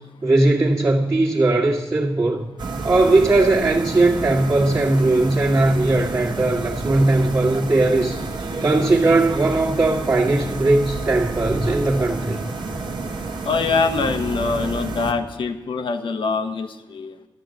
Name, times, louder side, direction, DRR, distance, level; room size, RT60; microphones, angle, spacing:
voice 1, 0.2-2.5 2.8-8.2 8.6-12.4, right 2 dB, 35° right, -7 dB, 1.9 m, -18 dB
sound 1, 2.6-15.1, right 3 dB, 55° right, 1.5 m, -29 dB
voice 2, 13.4-17.2, left 4 dB, 65° left, 8 dB, 1.3 m, -24 dB
12.5 x 12.5 x 7.8 m, 1.0 s
cardioid pair, 95°, 9 cm